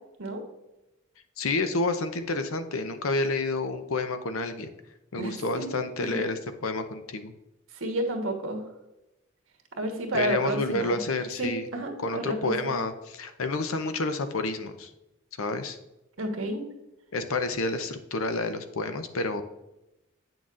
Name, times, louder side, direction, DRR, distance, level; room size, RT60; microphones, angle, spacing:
voice 1, 1.4-4.7 5.1-7.3 10.1-11.7 12.0-14.9 15.4-15.8 17.1-19.4, left 2 dB, 90° left, 9 dB, 0.7 m, -29 dB
voice 2, 5.2-5.7 6.0-6.2 7.7-8.6 9.8-11.0 11.4-12.8 16.2-16.6, right 1 dB, 80° right, 4 dB, 1.3 m, -31 dB
8.5 x 6.2 x 2.5 m, 0.96 s
head